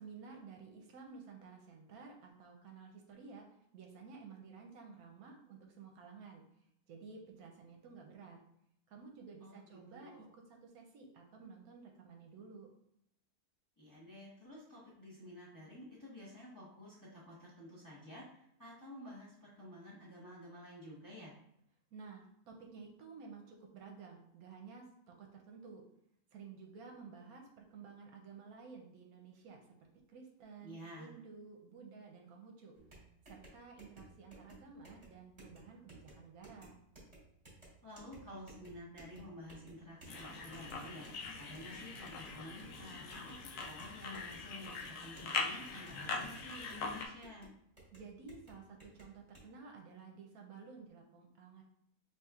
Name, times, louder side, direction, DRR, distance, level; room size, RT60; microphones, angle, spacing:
voice 1, 0.0-6.4 6.9-8.4 8.9-12.7 21.9-25.8 26.3-32.8 33.3-36.8 47.9-51.6, right 5 dB, 75° right, 2 dB, 1.1 m, -53 dB
voice 2, 9.4-10.2 13.8-21.3 30.6-31.1 37.8-47.5, left 1 dB, 15° left, -7 dB, 0.8 m, -51 dB
sound 1, 32.8-49.5, right 2 dB, 25° right, 1.3 m, -58 dB
sound 2, 40.1-47.1, left 4 dB, 80° left, 1.1 m, -42 dB
4.2 x 3.1 x 2.3 m, 0.74 s
omnidirectional pair, 1.6 m